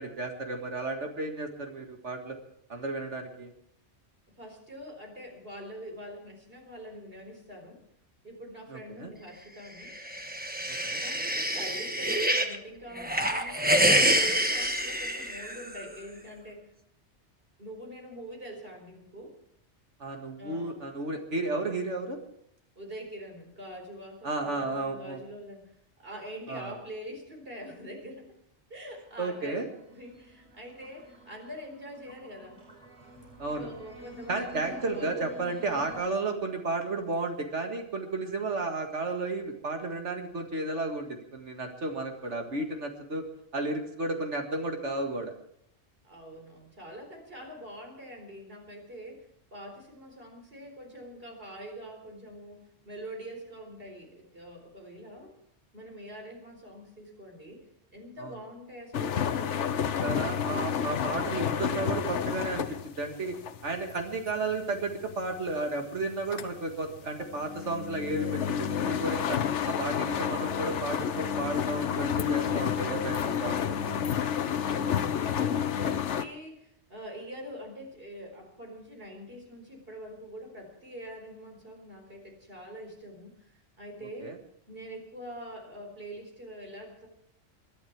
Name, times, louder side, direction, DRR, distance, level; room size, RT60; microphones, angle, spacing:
voice 1, 0.0-2.4 2.7-3.5 8.7-9.1 10.8-11.0 20.0-22.2 24.2-25.2 26.5-26.7 29.2-29.7 33.4-33.7 34.3-43.2 43.5-45.3 58.2-58.3 60.0-62.7 63.0-63.4 63.6-69.4 69.6-74.0 84.2-84.4, right 2 dB, 80° right, 3 dB, 2.2 m, -33 dB
voice 2, 4.3-7.8 8.2-9.9 11.0-13.7 14.1-16.7 17.6-19.3 20.4-20.9 22.8-25.7 26.0-28.3 28.7-29.6 29.9-32.6 33.5-35.3 46.0-49.3 49.5-55.3 55.7-57.6 57.9-61.4 74.6-83.5 83.8-84.3 84.7-87.1, equal, 55° right, 2 dB, 4.5 m, -44 dB
sound 1, 9.9-12.6 13.0-15.8, right 1 dB, 10° right, 1.2 m, -27 dB
sound 2, 29.3-36.0, equal, 30° right, 4.5 m, -50 dB
sound 3, 58.9-65.6 66.0-76.2, left 8 dB, 80° left, 1.2 m, -30 dB
22.5 x 11.5 x 4.7 m, 0.69 s
omnidirectional pair, 1.2 m